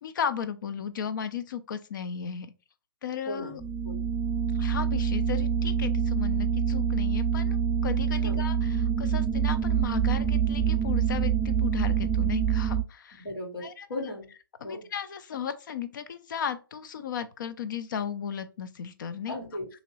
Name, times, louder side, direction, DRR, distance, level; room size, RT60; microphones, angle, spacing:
voice 1, 0.0-2.5 3.0-3.6 4.5-7.6 7.8-13.3 13.6-13.9 14.6-19.4, left 7 dB, 60° left, 0.5 m, -35 dB
voice 2, 3.3-3.6 3.8-4.0 8.2-8.4 13.1-14.3 14.6-14.9 19.3-19.7, left 1 dB, 90° left, 1.8 m, -36 dB
sound 1, 3.6-12.8, right 7 dB, ahead, 0.4 m, -26 dB
2.9 x 2.9 x 4.0 m
figure-of-eight pair, 130°, 12 cm